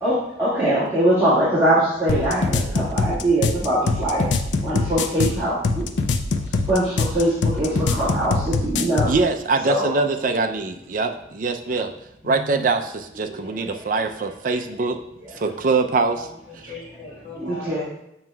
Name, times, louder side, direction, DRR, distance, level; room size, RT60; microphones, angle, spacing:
voice 1, 0.0-4.3 4.6-5.9 6.6-9.1 9.7-9.9 17.4-17.8, right 1 dB, 15° right, -12 dB, 1.7 m, -22 dB
sound 1, 2.1-9.2, left 3 dB, 70° left, 0.4 m, -23 dB
voice 2, 9.1-11.9 12.2-15.0 15.4-16.3, right 3 dB, 45° right, 6 dB, 0.4 m, -23 dB
voice 3, 12.2-12.6 13.7-13.8 16.1-17.8, left 2 dB, 35° left, -5 dB, 2.2 m, -39 dB
7.3 x 6.0 x 2.3 m, 0.82 s
head